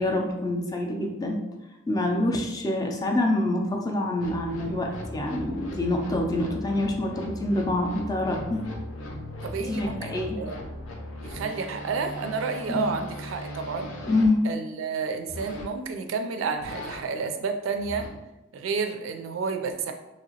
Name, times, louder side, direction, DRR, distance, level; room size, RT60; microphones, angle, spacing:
voice 1, 0.0-1.4 1.9-8.6 9.6-10.4 12.7-12.9 14.1-14.4, left 1 dB, 20° left, 1 dB, 0.4 m, -26 dB
sound 1, 4.2-14.3 15.2-15.7 16.6-17.0 17.7-18.1, left 1 dB, 85° left, 0.6 m, -38 dB
voice 2, 9.4-10.6 11.2-13.9 14.4-18.1 18.5-19.9, right 5 dB, 80° right, 6 dB, 0.4 m, -30 dB
3.0 x 2.8 x 2.8 m, 0.99 s
head